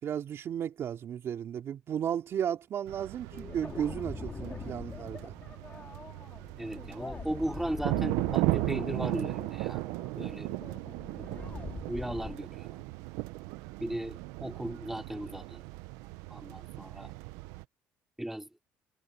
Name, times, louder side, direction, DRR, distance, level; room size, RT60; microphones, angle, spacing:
voice 1, 0.0-5.3, right 9 dB, 55° right, 3.0 m, -34 dB
sound 1, 2.9-17.6, right 20 dB, 90° right, 0.7 m, -36 dB
sound 2, 3.3-12.4, left 4 dB, 25° left, 3.2 m, -44 dB
voice 2, 6.6-9.8 10.2-10.5 11.9-12.8 13.8-15.6 16.3-17.1 18.2-18.5, right 1 dB, 5° right, 2.7 m, -36 dB
cardioid pair, 95°, 5 cm